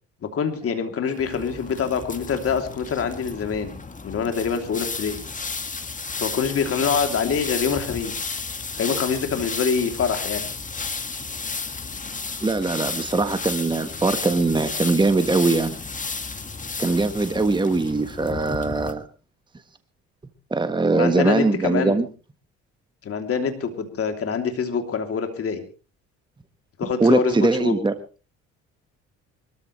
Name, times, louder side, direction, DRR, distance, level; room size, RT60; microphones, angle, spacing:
voice 1, 0.2-5.2 6.1-8.4 8.8-10.4 20.9-21.9 23.0-25.6 26.8-27.8, left 6 dB, 50° left, 6 dB, 3.2 m, -25 dB
sound 1, 1.1-18.9, left 4 dB, 25° left, 1.9 m, -33 dB
voice 2, 12.4-15.8 16.8-19.0 20.5-22.0 27.0-27.9, right 3 dB, 15° right, 9 dB, 1.4 m, -21 dB
23.5 x 14.0 x 3.3 m, 0.35 s
supercardioid pair, 80°, 29 cm